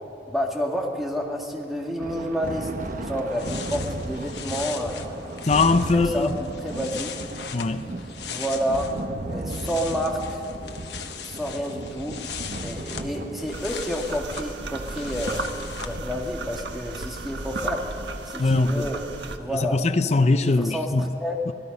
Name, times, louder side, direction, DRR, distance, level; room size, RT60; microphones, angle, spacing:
voice 1, 0.3-5.4 5.9-7.1 8.3-8.9 9.3-12.2 12.6-15.5 15.8-17.8 18.3-19.0 19.4-19.8 20.4-21.4, equal, ahead, 2.2 m, -30 dB
Thunder, 2.0-19.7, right 1 dB, 50° right, 1.0 m, -36 dB
sound 1, 3.2-9.0 9.3-16.0, left 8 dB, 70° left, 1.3 m, -39 dB
voice 2, 5.4-6.3 7.5-7.9 18.4-18.9 19.5-21.0 21.5-21.6, left 3 dB, 40° left, 0.6 m, -21 dB
sound 2, 13.5-19.4, right 2 dB, 80° right, 1.3 m, -35 dB
26.5 x 18.5 x 5.4 m
head